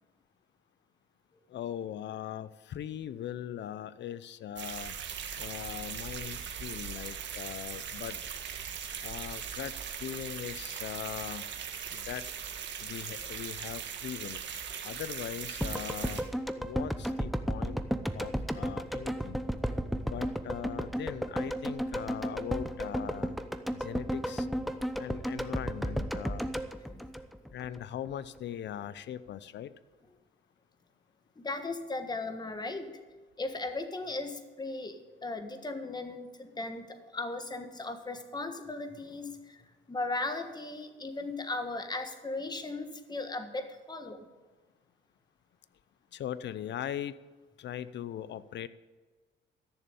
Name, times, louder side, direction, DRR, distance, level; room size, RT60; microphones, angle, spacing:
voice 1, 1.5-4.9 5.4-8.2 9.0-11.5 11.9-12.2 12.8-14.4 14.8-16.3 16.6-17.8 18.1-19.4 20.0-23.4 23.7-24.5 25.0-26.5 27.5-29.7 46.1-47.2 47.6-48.7, left 10 dB, 65° left, 16 dB, 0.7 m, -40 dB
sound 1, 4.6-16.2, right 7 dB, 65° right, 1.7 m, -39 dB
sound 2, 15.6-27.8 28.1-28.2, equal, ahead, 0.8 m, -33 dB
voice 2, 31.4-32.9 33.4-39.6 39.9-44.2, left 2 dB, 20° left, 7 dB, 1.5 m, -37 dB
14.0 x 6.9 x 8.8 m, 1.3 s
cardioid pair, 90°, 20 cm